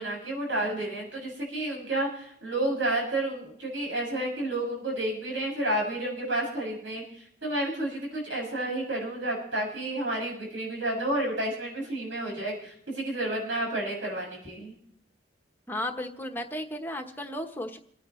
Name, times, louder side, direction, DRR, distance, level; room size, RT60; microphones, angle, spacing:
voice 1, 0.0-14.7, right 1 dB, 85° right, -1 dB, 7.0 m, -31 dB
voice 2, 15.7-17.8, left 1 dB, 10° left, 3 dB, 1.1 m, -34 dB
29.0 x 9.8 x 3.2 m, 0.68 s
head